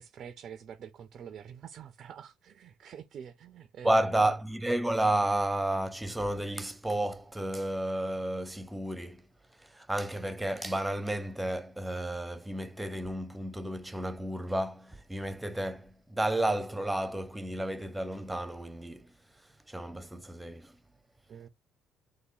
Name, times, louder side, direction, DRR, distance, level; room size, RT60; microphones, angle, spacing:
voice 1, 0.0-4.3 21.3-21.5, right 8 dB, 50° right, 0.4 m, -46 dB
voice 2, 3.8-9.2 9.6-19.1 19.7-20.8, right 1 dB, 10° right, 0.7 m, -31 dB
3.5 x 2.6 x 4.1 m
figure-of-eight pair, 50°, 0 cm